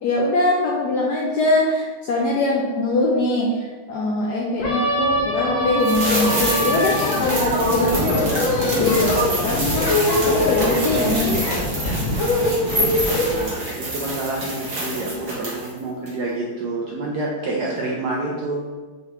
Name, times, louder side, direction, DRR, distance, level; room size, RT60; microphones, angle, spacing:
voice 1, 0.0-11.6, left 2 dB, 75° left, -3 dB, 0.9 m, -22 dB
sound 1, 4.6-13.4, left 1 dB, 50° left, 1.0 m, -22 dB
sound 2, 5.8-15.8 16.1-16.2, right 2 dB, 45° right, 1.3 m, -29 dB
sound 3, 8.1-8.6 9.2-9.8 10.4-12.1 12.7-13.3, right 1 dB, 15° right, 0.6 m, -30 dB
voice 2, 13.3-18.6, right 2 dB, 75° right, -3 dB, 0.9 m, -28 dB
4.7 x 3.3 x 2.8 m, 1.4 s
omnidirectional pair, 2.3 m